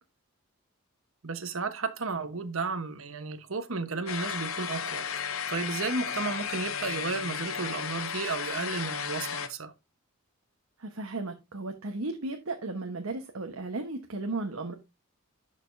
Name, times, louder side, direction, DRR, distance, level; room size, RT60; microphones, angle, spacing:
voice 1, 1.2-9.7, right 4 dB, 70° right, 1.1 m, -33 dB
sound 1, 4.1-9.5, left 7 dB, 70° left, 0.8 m, -34 dB
voice 2, 10.8-14.7, right 2 dB, 90° right, 1.2 m, -35 dB
11.0 x 5.1 x 2.7 m
head